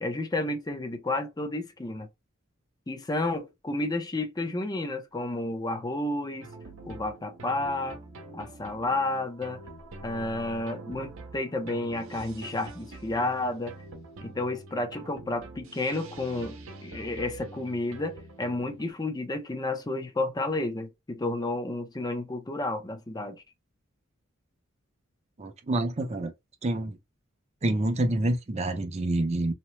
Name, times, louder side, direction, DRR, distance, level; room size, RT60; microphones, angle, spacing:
voice 1, 0.0-2.1 2.9-6.5 6.8-8.0 8.3-9.6 10.0-13.7 14.2-23.4, left 2 dB, 20° left, 0.5 m, -31 dB
sound 1, 6.4-18.9, right 2 dB, 80° right, 0.7 m, -45 dB
voice 2, 25.4-26.3 26.6-27.0 27.6-29.5, right 1 dB, 30° right, 0.5 m, -27 dB
2.8 x 2.0 x 3.1 m
head